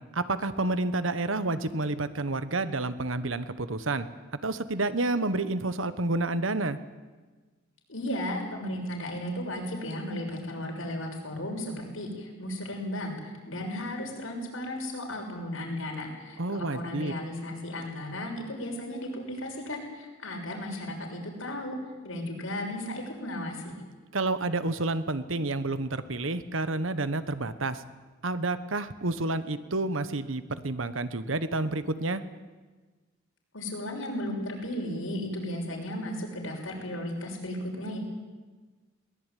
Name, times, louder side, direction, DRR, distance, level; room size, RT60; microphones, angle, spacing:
voice 1, 0.1-4.1 4.4-6.8 16.4-17.1 24.1-27.8 28.2-32.2, right 2 dB, 75° right, 12 dB, 1.3 m, -29 dB
voice 2, 7.9-21.8 22.0-23.8 33.5-38.0, left 1 dB, 80° left, 1 dB, 6.4 m, -35 dB
22.0 x 19.0 x 9.3 m, 1.3 s
head